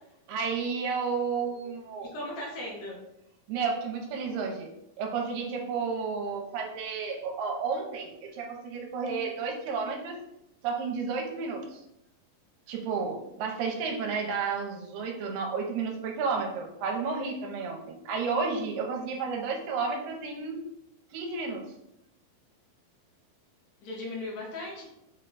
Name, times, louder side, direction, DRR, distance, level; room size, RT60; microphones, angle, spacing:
voice 1, 0.3-2.1 3.5-4.7 5.0-10.2 10.6-11.8 12.7-20.6 21.1-21.6, right 5 dB, 80° right, 1 dB, 2.3 m, -32 dB
voice 2, 2.1-3.0 23.8-24.9, left 1 dB, 70° left, -3 dB, 1.8 m, -37 dB
5.7 x 2.2 x 3.8 m, 0.83 s
omnidirectional pair, 4.1 m